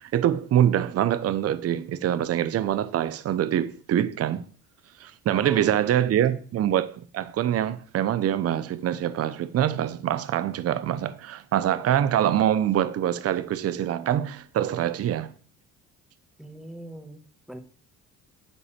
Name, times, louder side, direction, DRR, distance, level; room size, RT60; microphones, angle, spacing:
voice 1, 0.0-4.4 5.0-15.3, right 11 dB, 50° right, 0.9 m, -25 dB
voice 2, 5.3-6.4 16.4-17.2 17.5-17.6, equal, ahead, 2.0 m, -42 dB
10.0 x 4.1 x 7.4 m
cardioid pair, 100°, 30 cm